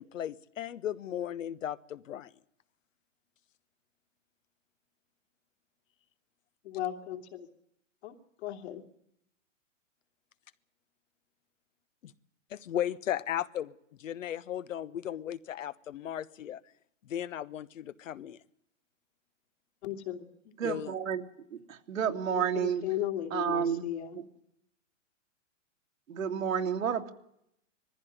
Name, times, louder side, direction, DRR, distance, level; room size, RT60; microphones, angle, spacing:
voice 1, 0.0-2.3 12.0-12.1 12.5-13.7 14.0-16.6 17.1-18.4 20.6-20.9, left 10 dB, 75° left, 16 dB, 1.2 m, -36 dB
voice 2, 6.6-7.2 8.0-8.8 19.8-20.5 22.0-24.2, left 12 dB, 55° left, 4 dB, 3.1 m, -36 dB
voice 3, 20.6-21.2 21.5-22.8 23.3-23.8 26.1-27.1, right 8 dB, 90° right, 4 dB, 2.6 m, -30 dB
20.5 x 15.0 x 9.3 m, 0.76 s
hypercardioid pair, 155°, 38 cm